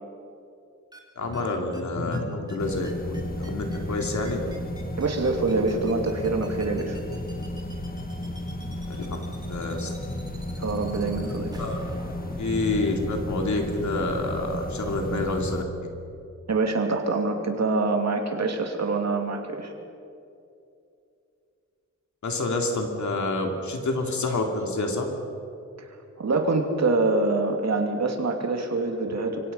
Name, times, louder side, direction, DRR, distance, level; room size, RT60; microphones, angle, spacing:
sound 1, 0.9-1.0 1.3-1.4 1.7-1.8 2.1-2.2 2.5-2.6 2.8-15.0, right 1 dB, 15° right, 2.7 m, -46 dB
voice 1, 1.1-4.4 8.9-9.2 9.5-9.9 11.6-12.1 12.4-15.6 22.2-25.1, left 2 dB, 70° left, 2 dB, 3.2 m, -28 dB
sound 2, 2.6-15.6, left 1 dB, 30° left, 1.5 m, -34 dB
voice 2, 5.0-7.0 10.6-11.5 16.5-19.7 26.2-29.5, right 3 dB, 60° right, 3 dB, 2.8 m, -25 dB
26.0 x 23.5 x 5.7 m, 2.6 s
wide cardioid pair, 160°, 30 cm